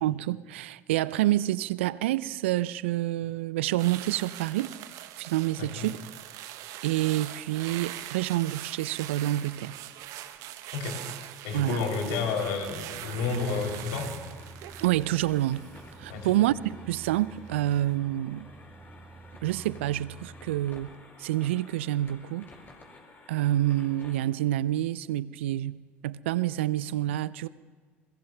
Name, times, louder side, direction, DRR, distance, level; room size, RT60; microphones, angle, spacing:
voice 1, 0.0-4.8 5.2-6.0 6.8-9.8 11.5-11.8 14.8-15.7 16.0-18.5 19.4-22.5 23.3-27.5, right 14 dB, 75° right, 19 dB, 0.4 m, -28 dB
sound 1, 3.8-17.1 17.5-17.8, right 13 dB, 60° right, 0.8 m, -42 dB
voice 2, 5.6-5.9 10.7-11.0 11.4-14.1 16.1-16.3, left 5 dB, 65° left, 2 dB, 2.9 m, -30 dB
sound 2, 12.7-20.7, right 3 dB, 20° right, 1.2 m, -49 dB
sound 3, 13.3-24.2, left 3 dB, 30° left, 5.3 m, -52 dB
29.5 x 22.0 x 2.2 m, 1.5 s
hypercardioid pair, 65°, 7 cm